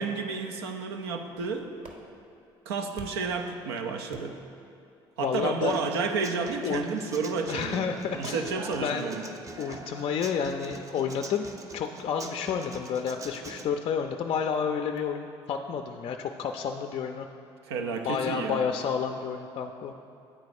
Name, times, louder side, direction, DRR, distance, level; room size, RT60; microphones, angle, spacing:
voice 1, 0.0-1.7 2.7-4.3 5.2-9.2 17.7-18.7, right 4 dB, 90° right, 4 dB, 0.5 m, -31 dB
sound 1, 1.8-3.4 4.1-4.7 5.6-6.7 7.5-7.6 8.1-9.2 9.7-10.4 11.8-12.1 13.2-13.4 14.1-14.2 14.5-14.6 15.0-15.1 15.4-15.5 15.9-16.0 16.5-16.6 17.0-17.1 17.9-18.1, right 2 dB, 60° right, 1.0 m, -47 dB
voice 2, 5.2-5.8 6.6-6.9 7.5-8.5 8.8-9.1 9.6-17.3 18.0-19.9, left 7 dB, 50° left, 5 dB, 0.4 m, -30 dB
Human voice / Acoustic guitar, 5.7-13.7, right 2 dB, 25° right, 0.5 m, -44 dB
8.9 x 4.1 x 4.8 m, 2.6 s
hypercardioid pair, 60°, 13 cm